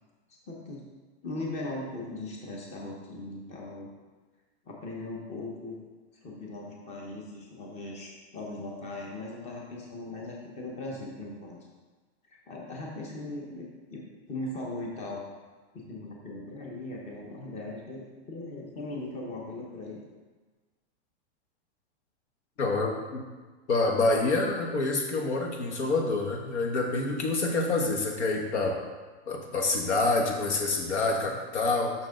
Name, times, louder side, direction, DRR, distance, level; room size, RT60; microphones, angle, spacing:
voice 1, 0.5-0.8 1.2-3.9 4.6-5.8 6.2-11.6 12.5-15.2 15.7-20.0, left 2 dB, 20° left, -2 dB, 1.1 m, -39 dB
voice 2, 22.6-23.2 23.7-28.8 29.3-31.9, left 3 dB, 85° left, 2 dB, 1.4 m, -27 dB
6.2 x 6.2 x 3.9 m, 1.3 s
supercardioid pair, 150°, 33 cm